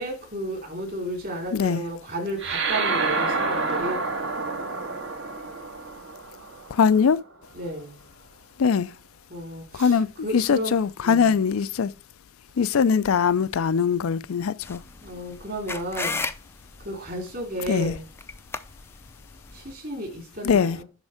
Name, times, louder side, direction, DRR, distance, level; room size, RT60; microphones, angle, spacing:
voice 1, 0.0-4.0 7.5-8.0 9.3-10.7 11.0-11.3 15.0-16.2 16.8-18.0 19.5-20.8, right 1 dB, 45° right, 3.3 m, -33 dB
voice 2, 1.5-1.8 6.7-7.2 8.6-8.9 9.7-10.1 10.3-11.9 12.6-14.8 17.7-17.9 20.4-20.8, left 6 dB, 85° left, 0.4 m, -21 dB
sound 1, 2.4-7.1, right 3 dB, 65° right, 1.6 m, -28 dB
sound 2, 14.6-19.7, left 4 dB, 10° left, 0.4 m, -36 dB
10.5 x 3.6 x 4.9 m
head